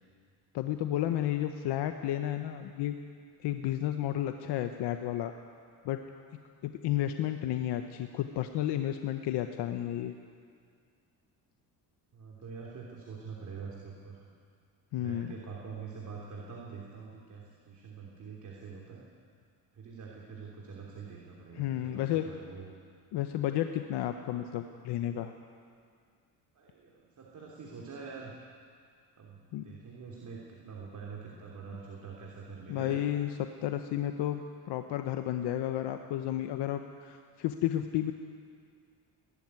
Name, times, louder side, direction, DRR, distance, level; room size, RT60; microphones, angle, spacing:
voice 1, 0.5-3.0 3.4-5.3 5.8-6.0 6.6-10.1 14.9-15.3 21.6-22.2 23.1-25.3 29.5-29.7 32.7-33.3 33.6-34.4 34.7-38.1, left 12 dB, 75° left, 7 dB, 1.0 m, -32 dB
voice 2, 12.1-14.2 15.0-19.0 19.7-22.7 26.5-28.4 29.2-33.0, right 5 dB, 45° right, -2 dB, 3.1 m, -45 dB
22.0 x 12.5 x 9.7 m, 2.2 s
cardioid pair, 100°, 41 cm